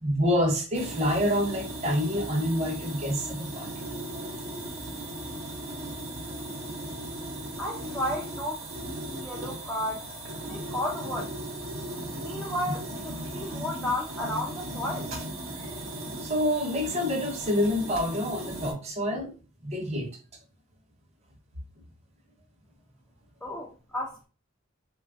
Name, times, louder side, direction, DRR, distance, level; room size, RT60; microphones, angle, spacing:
voice 1, 0.0-3.7 12.7-12.8 16.2-19.3 19.6-20.2, equal, 30° right, 0.6 m, -27 dB
sound 1, 0.7-18.7, right 1 dB, 80° right, 0.8 m, -37 dB
voice 2, 7.6-10.2 10.5-11.3 12.1-15.1 23.4-24.3, left 1 dB, 5° left, 0.3 m, -33 dB
3.1 x 2.2 x 2.5 m
head